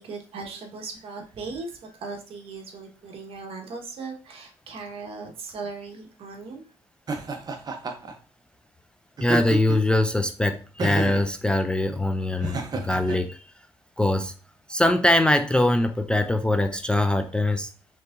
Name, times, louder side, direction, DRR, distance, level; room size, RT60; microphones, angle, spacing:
voice 1, 0.0-6.6, right 4 dB, 55° right, 2 dB, 1.3 m, -38 dB
Laughter, 7.1-8.1 9.2-9.9 10.8-11.3 12.4-13.2, right 3 dB, 35° right, 0.8 m, -30 dB
voice 2, 9.2-13.5 14.0-14.3 14.7-17.7, left 1 dB, 10° left, 7 dB, 0.3 m, -22 dB
4.5 x 3.7 x 2.6 m, 0.37 s
cardioid pair, 95°, 11 cm